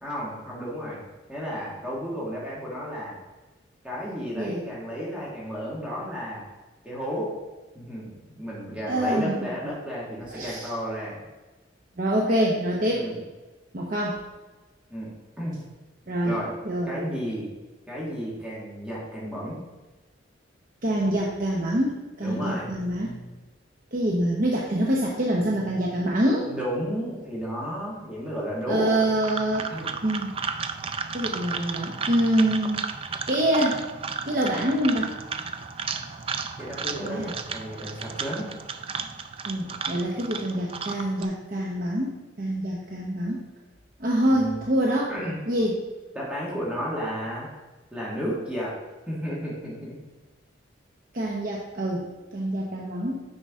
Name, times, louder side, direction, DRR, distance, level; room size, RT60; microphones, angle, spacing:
voice 1, 0.0-1.0 1.3-3.2 3.8-6.4 6.8-7.3 7.7-11.2 12.9-13.2 14.9-15.1 15.4-15.6 16.2-16.5 16.9-17.5 17.9-19.6 22.2-22.8 26.4-29.0 29.7-30.0 36.6-38.5 44.3-44.6 45.1-45.4 46.1-47.5 47.9-48.8 49.1-49.9, equal, 5° right, -6 dB, 1.9 m, -32 dB
voice 2, 8.9-9.5 10.3-10.7 12.0-13.1 13.7-14.2 16.1-16.4 16.6-16.9 20.8-23.1 23.9-26.5 28.7-29.6 30.0-30.3 31.1-32.8 33.3-33.8 34.3-35.1 37.0-37.3 39.5-43.4 44.0-45.1 45.5-45.8 51.1-53.2, right 1 dB, 50° right, -3 dB, 1.0 m, -25 dB
sound 1, 28.9-41.2, right 5 dB, 30° right, 0.4 m, -34 dB
9.9 x 5.0 x 3.7 m, 1.2 s
head